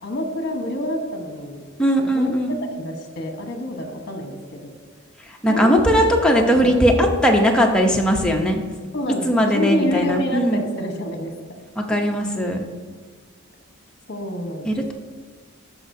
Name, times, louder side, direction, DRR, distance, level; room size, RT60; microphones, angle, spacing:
voice 1, 0.0-1.6 2.0-4.7 5.5-6.0 6.3-6.7 8.9-11.6 11.9-12.0 14.1-14.9, left 1 dB, 50° left, 4 dB, 1.1 m, -28 dB
voice 2, 1.8-2.6 5.3-8.6 9.2-10.6 11.8-12.6 14.6-14.9, equal, 5° left, 0 dB, 0.7 m, -19 dB
13.0 x 5.0 x 2.7 m, 1.5 s
head